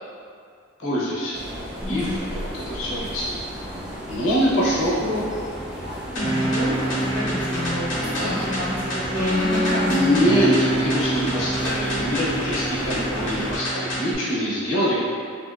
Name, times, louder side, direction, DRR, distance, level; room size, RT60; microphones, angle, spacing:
voice 1, 0.8-1.4 1.9-3.4 4.1-5.0 7.9-8.6 9.9-15.0, equal, 90° left, -7 dB, 0.7 m, -24 dB
sound 1, 1.3-13.6, equal, 5° right, 0.4 m, -34 dB
voice 2, 1.8-2.3 5.0-5.2 6.1-10.2, left 1 dB, 40° right, -11 dB, 1.0 m, -29 dB
sound 2, 6.2-14.2, right 1 dB, 65° left, 0.9 m, -26 dB
3.4 x 2.7 x 2.3 m, 2.3 s
head